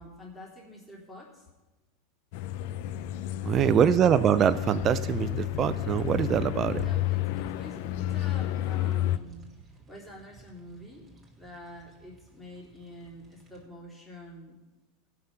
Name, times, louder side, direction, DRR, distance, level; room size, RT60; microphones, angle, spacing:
voice 1, 0.0-1.5 3.4-4.0 6.8-9.4 9.9-11.1 11.4-14.6, left 1 dB, 10° left, -4 dB, 3.3 m, -46 dB
sound 1, 2.3-9.2, left 13 dB, 65° left, 0.5 m, -31 dB
voice 2, 3.5-6.9, right 9 dB, 35° right, 12 dB, 0.5 m, -24 dB
sound 2, 3.9-13.6, right 2 dB, 15° right, 2.8 m, -46 dB
16.0 x 6.0 x 5.9 m, 1.1 s
hypercardioid pair, 105°, 0 cm